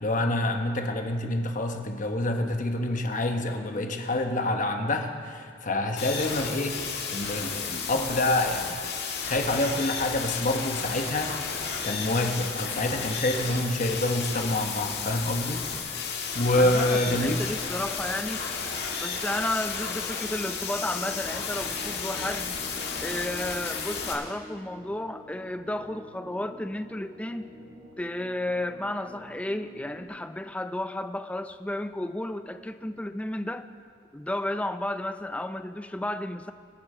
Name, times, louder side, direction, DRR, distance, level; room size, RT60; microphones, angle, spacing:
voice 1, 0.0-6.8 7.1-8.8 9.2-11.3 11.8-15.6 16.3-17.4, left 1 dB, 40° left, 4 dB, 1.1 m, -27 dB
sound 1, 6.0-24.1, left 5 dB, 60° left, 1.8 m, -33 dB
voice 2, 16.5-18.5 18.9-22.5 23.0-27.5 28.0-33.7 34.1-36.5, left 1 dB, 5° left, 10 dB, 0.4 m, -32 dB
sound 2, 20.3-30.0, left 1 dB, 45° right, 2.6 m, -47 dB
24.5 x 8.7 x 4.3 m, 2.2 s
head